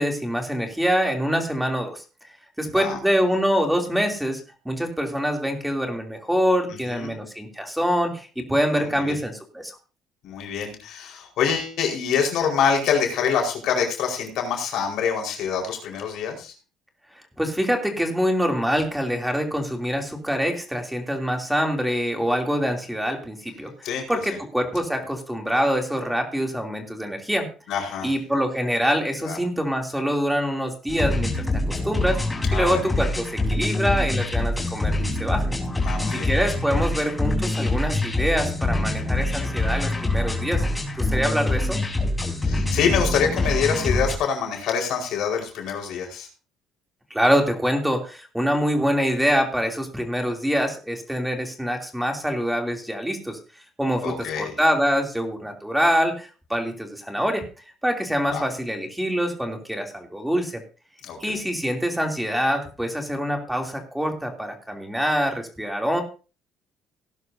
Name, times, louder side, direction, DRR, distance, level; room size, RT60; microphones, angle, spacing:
voice 1, 0.0-2.0 2.6-9.7 17.4-27.5 28.0-32.2 32.5-35.5 36.1-40.6 41.0-41.8 47.1-53.4 53.8-57.4 57.8-60.6 61.2-66.0, equal, 5° right, 3 dB, 3.0 m, -25 dB
voice 2, 2.6-3.0 6.9-7.1 8.7-9.1 10.2-16.5 23.8-24.0 24.3-24.4 27.7-28.1 29.2-29.4 32.5-32.8 35.8-36.3 42.4-46.3 54.0-54.5 58.3-58.4 61.0-61.4, left 7 dB, 70° left, 2 dB, 4.7 m, -25 dB
sound 1, 30.9-44.2, left 2 dB, 15° left, 4.1 m, -25 dB
18.0 x 11.0 x 2.8 m, 0.33 s
supercardioid pair, 80°, 0 cm